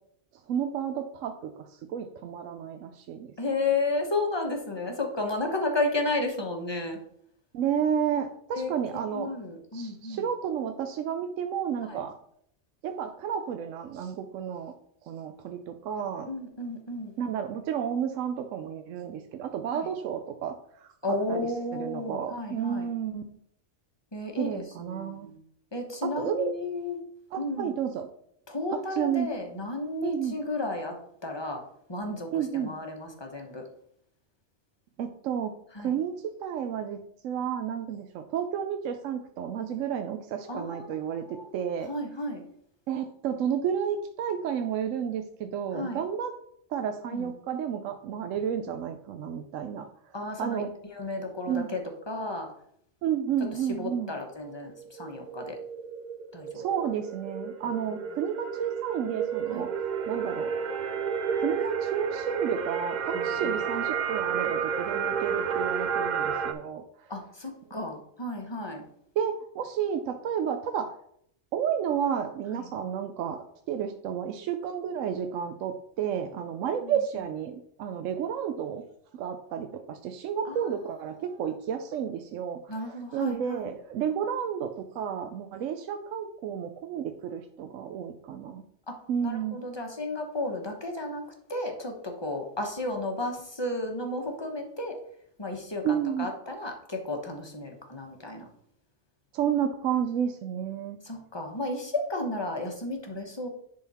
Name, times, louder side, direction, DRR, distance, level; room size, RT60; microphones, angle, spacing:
voice 1, 0.5-3.3 7.5-9.3 9.7-12.1 12.8-14.7 15.0-16.3 17.2-23.2 24.4-25.3 26.0-26.5 27.3-28.1 28.7-29.3 30.0-30.4 32.3-32.7 35.0-35.5 35.8-37.0 37.2-41.9 42.9-46.3 46.7-49.9 50.4-50.7 51.5-51.7 53.0-54.2 56.5-59.7 60.1-60.5 61.4-67.1 69.2-71.0 71.5-78.8 79.1-88.6 89.1-89.6 95.8-96.3 99.3-101.0, right 8 dB, 80° right, 6 dB, 1.0 m, -31 dB
voice 2, 3.4-7.0 8.5-8.7 9.1-10.2 11.9-12.0 16.3-17.1 21.0-22.9 24.1-25.4 25.7-27.0 27.4-27.7 28.5-30.9 31.2-31.6 31.9-32.3 32.5-33.6 35.7-35.9 40.5-41.6 41.9-42.4 45.7-46.0 47.1-47.3 50.1-50.6 50.9-51.8 52.1-52.5 53.7-55.6 56.3-56.6 59.5-59.7 63.1-63.5 67.1-68.8 72.5-72.6 76.8-76.9 80.5-80.6 82.7-83.7 88.9-89.0 89.2-91.2 91.5-95.0 95.4-98.4 101.0-103.5, left 2 dB, 20° left, 2 dB, 1.1 m, -33 dB
sound 1, 54.5-66.5, right 7 dB, 50° right, 0.6 m, -31 dB
10.5 x 3.9 x 4.2 m, 0.70 s
omnidirectional pair, 1.3 m